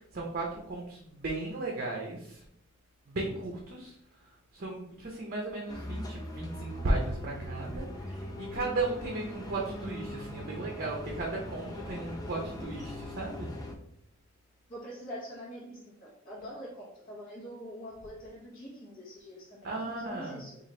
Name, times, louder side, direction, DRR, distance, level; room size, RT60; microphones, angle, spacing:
voice 1, 0.1-2.4 3.1-3.9 4.5-13.5 19.6-20.4, right 2 dB, 45° right, -1 dB, 0.6 m, -35 dB
sound 1, 5.7-13.8, left 1 dB, 20° left, 0.5 m, -40 dB
voice 2, 14.7-20.6, equal, 40° left, -7 dB, 0.9 m, -44 dB
3.8 x 2.4 x 3.1 m, 0.74 s
head